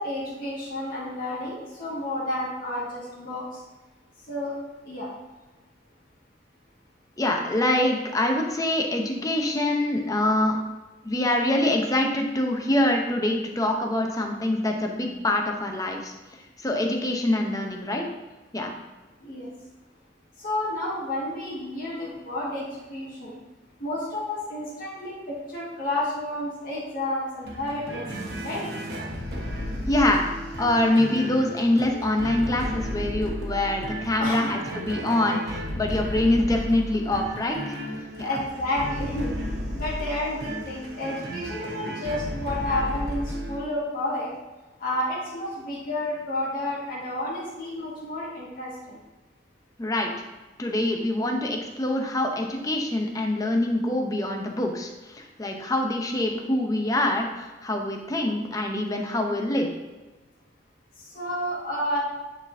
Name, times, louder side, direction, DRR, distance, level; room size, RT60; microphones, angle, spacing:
voice 1, 0.0-3.4 4.3-4.5 4.8-5.1 19.2-19.5 20.4-23.4 23.8-28.7 34.2-34.5 38.2-44.3 44.8-49.0 61.1-62.0, left 1 dB, 50° left, -8 dB, 1.7 m, -31 dB
voice 2, 7.2-10.6 11.0-16.1 16.6-18.0 18.5-18.7 29.9-30.3 30.6-37.8 38.2-38.4 49.8-50.1 50.6-59.7, left 1 dB, 20° left, 2 dB, 0.7 m, -25 dB
sound 1, 27.4-43.6, equal, 60° right, 1.1 m, -33 dB
9.6 x 4.1 x 2.7 m, 1.2 s
head